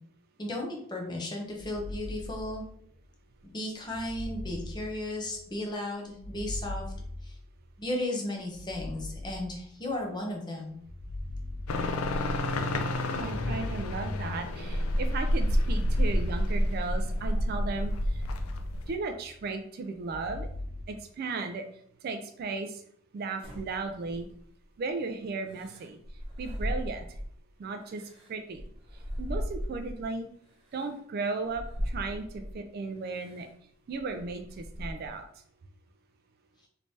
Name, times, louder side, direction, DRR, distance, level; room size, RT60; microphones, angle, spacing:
voice 1, 0.4-2.7 3.5-6.8 7.2-7.3 7.8-10.8, left 1 dB, 20° left, 0 dB, 0.7 m, -35 dB
sound 1, 1.5-3.0 3.8-5.5 6.1-7.9 8.5-10.0 10.7-12.5 13.0-14.7 15.4-17.1 17.6-19.4 20.0-20.8, left 1 dB, 65° right, 0.9 m, -40 dB
sound 2, 11.7-18.9, left 1 dB, 85° left, 0.4 m, -29 dB
voice 2, 13.1-18.2 18.9-20.5 20.9-21.7 22.0-22.8 23.1-24.3 24.8-26.0 26.4-27.1 27.6-28.0 28.3-28.6 29.2-30.3 30.7-33.5 33.9-35.2, right 3 dB, 45° right, 7 dB, 0.3 m, -35 dB
sound 3, 23.4-24.6 25.5-27.4 27.8-30.1 30.7-30.9 31.4-32.6 33.1-33.5 33.9-35.2, equal, 25° right, 0.9 m, -38 dB
3.2 x 3.2 x 2.7 m, 0.66 s
head